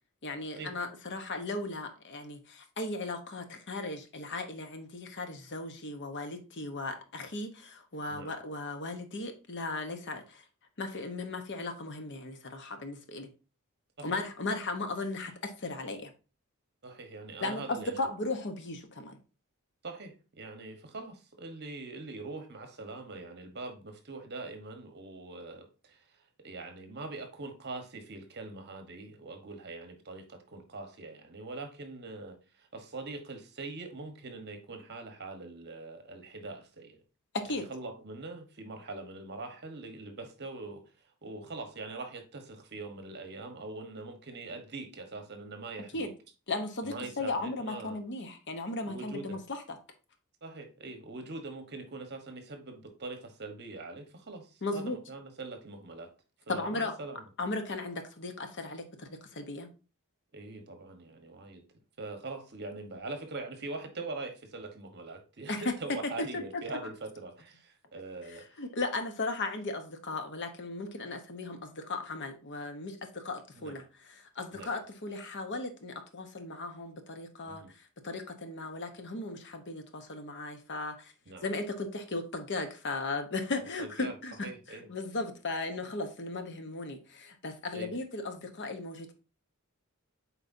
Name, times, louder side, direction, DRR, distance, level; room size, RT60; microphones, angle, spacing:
voice 1, 0.2-10.4 10.8-13.3 14.0-16.1 17.4-19.2 37.3-37.7 45.9-46.1 46.5-49.6 54.6-55.0 56.5-56.9 57.4-59.7 65.5-65.7 66.3-66.9 68.6-77.6 78.0-81.1 81.4-89.1, left 2 dB, 55° left, 1.0 m, -36 dB
voice 2, 16.8-18.0 19.8-37.0 37.5-40.8 41.2-46.1 46.8-48.0 48.8-49.4 50.4-56.1 56.5-57.2 60.3-61.6 62.0-68.5 73.6-73.8 74.5-74.7 77.5-77.7 81.3-81.5 83.8-84.1 84.4-84.9 87.7-87.9, right 3 dB, 50° right, 1.2 m, -43 dB
7.8 x 4.4 x 2.7 m
head